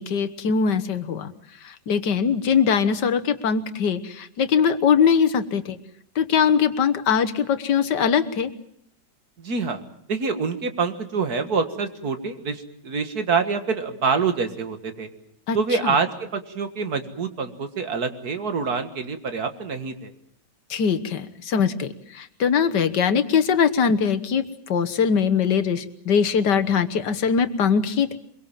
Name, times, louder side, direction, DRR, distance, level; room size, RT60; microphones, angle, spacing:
voice 1, 0.0-1.3 1.6-5.8 6.2-8.5 15.5-15.9 20.7-28.2, left 6 dB, 85° left, 9 dB, 1.9 m, -22 dB
voice 2, 9.4-9.8 10.1-15.1 15.5-20.1, right 5 dB, 65° right, 8 dB, 2.3 m, -26 dB
24.0 x 23.0 x 7.4 m, 0.68 s
omnidirectional pair, 1.8 m